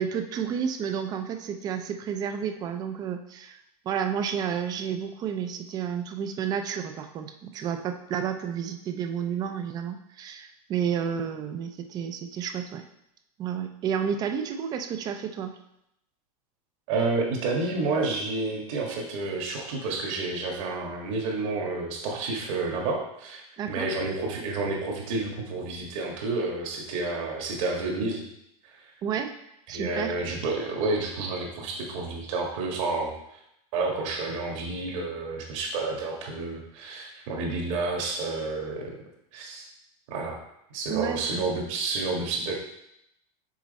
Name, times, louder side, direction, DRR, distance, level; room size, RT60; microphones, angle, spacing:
voice 1, 0.0-3.6 3.9-12.8 13.4-15.5 23.6-23.9 29.0-29.3 29.7-30.2 40.9-41.5, right 8 dB, 20° right, 7 dB, 0.4 m, -31 dB
voice 2, 16.9-23.4 23.7-28.2 29.7-33.1 33.7-38.9 39.3-39.7 40.1-40.4 40.7-42.5, right 3 dB, 55° right, 0 dB, 1.6 m, -30 dB
6.1 x 4.2 x 4.1 m, 0.79 s
supercardioid pair, 165°, 20 cm